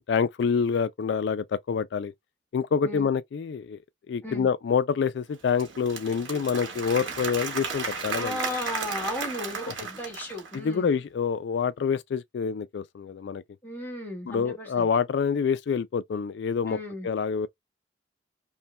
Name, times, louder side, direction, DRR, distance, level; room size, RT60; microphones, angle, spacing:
voice 1, 0.1-2.1 2.5-3.8 4.1-8.4 10.5-13.4 14.3-16.8 17.0-17.5, left 6 dB, 65° left, 0.3 m, -27 dB
Applause / Crowd, 5.3-10.7, right 5 dB, 85° right, 1.3 m, -34 dB
voice 2, 8.1-11.0 13.6-14.9 16.7-17.1, left 1 dB, 10° left, 1.4 m, -35 dB
5.5 x 2.2 x 2.2 m
head